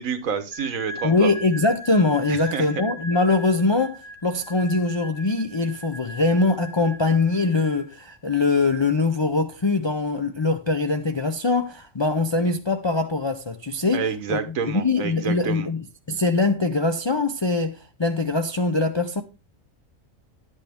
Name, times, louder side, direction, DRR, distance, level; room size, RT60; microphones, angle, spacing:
voice 1, 0.0-1.3 2.3-2.7 13.9-15.7, right 6 dB, 85° right, 1.5 m, -28 dB
sound 1, 0.5-8.2, equal, 25° left, 1.1 m, -40 dB
voice 2, 1.0-19.2, left 3 dB, 45° left, 0.3 m, -23 dB
10.5 x 8.2 x 3.5 m
omnidirectional pair, 1.4 m